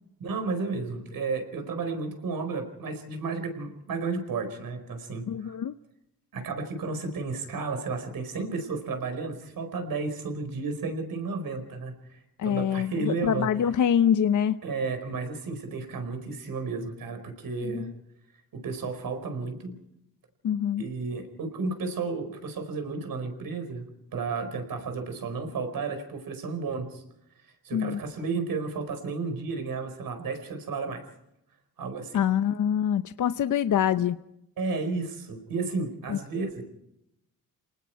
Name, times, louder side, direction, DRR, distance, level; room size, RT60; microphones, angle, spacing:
voice 1, 0.2-5.6 6.3-13.5 14.6-17.9 18.5-19.8 20.8-23.9 24.1-27.0 27.4-31.0 31.8-32.2 34.6-36.6, right 4 dB, 70° right, 7 dB, 4.8 m, -32 dB
voice 2, 5.3-5.7 12.4-14.6 17.6-17.8 20.4-20.8 27.7-28.0 32.1-34.2 36.1-36.2, left 9 dB, 60° left, 11 dB, 0.8 m, -25 dB
29.5 x 19.5 x 4.7 m, 0.82 s
cardioid pair, 95°, 35 cm